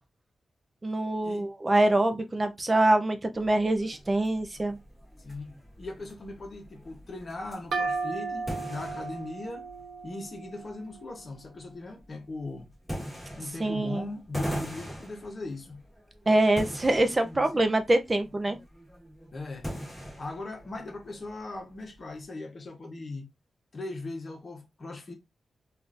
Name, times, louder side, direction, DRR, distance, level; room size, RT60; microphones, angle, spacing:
voice 1, 0.8-4.8 13.6-14.1 16.3-18.6, right 1 dB, 20° right, 0.5 m, -24 dB
sound 1, 3.4-22.2, equal, ahead, 1.4 m, -42 dB
voice 2, 5.2-9.7 10.0-12.7 13.4-15.8 17.2-17.7 19.3-19.7 20.2-23.3 23.7-25.1, left 2 dB, 35° left, 1.0 m, -39 dB
sound 2, 7.7-11.3, right 4 dB, 70° right, 0.6 m, -35 dB
3.6 x 2.5 x 2.5 m
wide cardioid pair, 155°, 0 cm